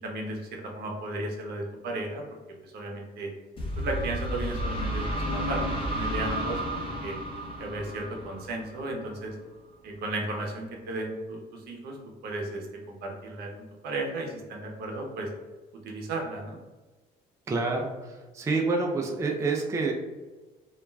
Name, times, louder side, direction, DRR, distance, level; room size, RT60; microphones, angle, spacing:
voice 1, 0.0-2.2 2.6-3.3 3.8-7.2 7.6-9.3 9.8-12.0 12.2-13.5 13.8-15.3 15.8-16.6, right 2 dB, 70° right, 1 dB, 0.7 m, -34 dB
sound 1, 3.6-9.2, equal, 30° left, 0.8 m, -32 dB
voice 2, 17.5-19.9, right 3 dB, 15° right, 1 dB, 0.3 m, -28 dB
2.4 x 2.2 x 3.2 m, 1.2 s
cardioid pair, 110°, 17 cm